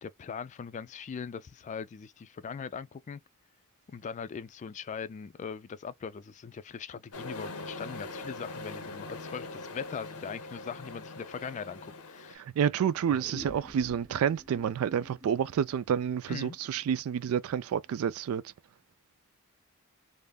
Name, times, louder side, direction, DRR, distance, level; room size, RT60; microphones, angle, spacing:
voice 1, 0.0-3.2 3.9-12.4 16.3-16.6, left 6 dB, 35° left, 0.3 m, -40 dB
sound 1, 7.1-12.3, left 2 dB, 90° left, 0.7 m, -42 dB
voice 2, 12.3-18.4, right 8 dB, 70° right, 0.3 m, -29 dB
sound 2, 13.1-18.0, right 1 dB, 40° right, 0.8 m, -49 dB
3.4 x 2.0 x 2.3 m
head